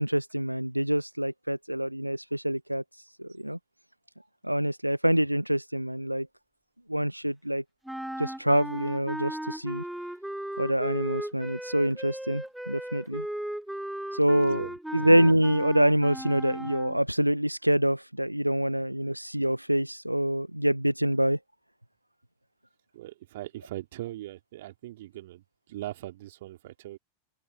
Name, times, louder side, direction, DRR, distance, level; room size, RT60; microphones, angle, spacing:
voice 1, 0.0-3.6 4.4-6.3 6.9-7.6 8.2-9.8 10.6-13.3 14.1-14.6 14.9-21.4, equal, 90° right, 1.0 m, -26 dB
sound 1, 7.9-17.0, right 1 dB, ahead, 1.2 m, -36 dB
voice 2, 14.4-14.8 22.9-27.0, right 15 dB, 55° right, 2.7 m, -40 dB
open air
figure-of-eight pair, 90°, 0 cm